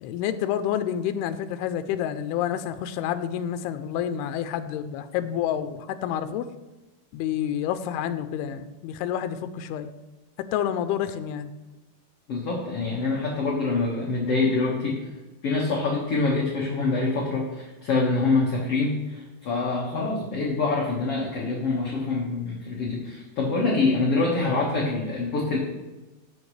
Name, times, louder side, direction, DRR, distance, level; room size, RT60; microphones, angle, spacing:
voice 1, 0.0-6.5 7.1-9.9 10.4-11.5 19.9-20.1, left 10 dB, 85° left, 10 dB, 2.6 m, -29 dB
voice 2, 12.3-15.0 15.4-25.6, left 3 dB, 50° left, -3 dB, 1.9 m, -25 dB
16.5 x 7.1 x 3.2 m, 1.1 s
omnidirectional pair, 4.6 m